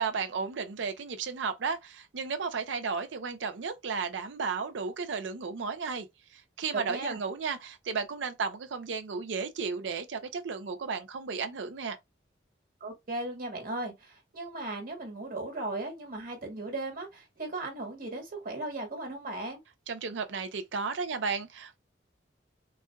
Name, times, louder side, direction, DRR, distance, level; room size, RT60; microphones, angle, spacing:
voice 1, 0.0-6.1 6.3-12.0 19.9-21.8, right 5 dB, 80° right, 0.5 m, -34 dB
voice 2, 6.7-7.2 12.8-19.6, right 2 dB, 50° right, 1.6 m, -37 dB
4.2 x 2.3 x 2.3 m
head